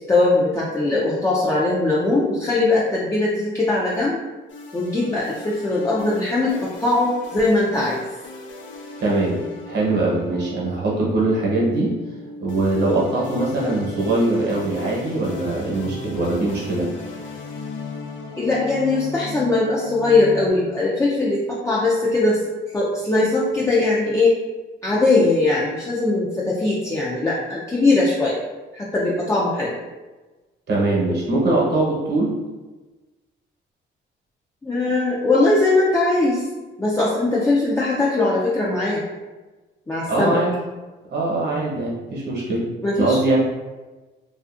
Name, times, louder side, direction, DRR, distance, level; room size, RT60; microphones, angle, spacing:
voice 1, 0.1-4.2 4.7-8.0 18.4-22.4 22.7-24.4 24.8-28.4 28.7-29.7 34.6-36.5 36.8-39.0 39.9-40.4 42.8-43.2, left 2 dB, 15° left, -6 dB, 0.4 m, -20 dB
sound 1, 4.5-20.5, left 3 dB, 70° left, 0.5 m, -37 dB
voice 2, 9.0-9.4 9.7-11.9 12.4-16.9 30.7-32.3 40.1-40.5 41.1-42.6 43.0-43.4, right 2 dB, 60° right, -4 dB, 1.0 m, -22 dB
2.5 x 2.4 x 2.4 m, 1.2 s
cardioid pair, 90°, 20 cm